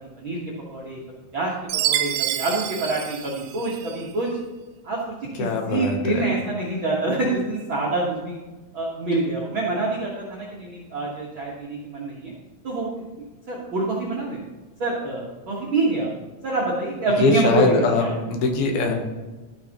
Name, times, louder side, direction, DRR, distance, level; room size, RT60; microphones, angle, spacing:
voice 1, 1.3-4.3 4.8-8.4 8.7-12.3 12.6-12.9 13.5-14.4 14.8-16.1 16.4-17.7 18.0-18.1, right 2 dB, 60° right, -5 dB, 1.3 m, -26 dB
Chime, 1.7-4.0, right 12 dB, 85° right, 2.4 m, -27 dB
voice 2, 5.4-6.3 17.2-18.9, left 3 dB, 80° left, 3 dB, 2.9 m, -21 dB
13.0 x 6.6 x 2.9 m, 1.2 s
omnidirectional pair, 4.3 m